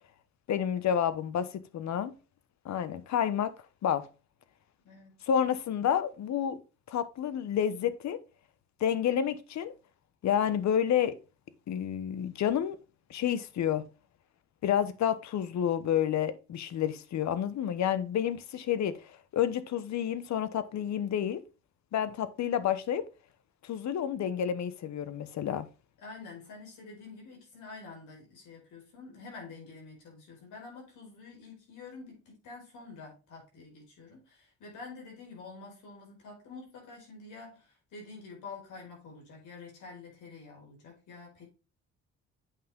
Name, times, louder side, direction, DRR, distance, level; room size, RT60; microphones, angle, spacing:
voice 1, 0.5-2.1 2.6-3.5 3.8-4.1 5.3-6.6 6.9-8.2 8.8-9.7 10.2-11.1 11.7-12.8 13.1-13.8 14.6-21.4 21.9-23.0 23.6-25.7, left 9 dB, 65° left, 1.0 m, -29 dB
voice 2, 4.8-5.2 26.0-41.5, left 4 dB, 80° left, 5.1 m, -48 dB
8.5 x 5.6 x 3.6 m
cardioid pair, 90°, 30 cm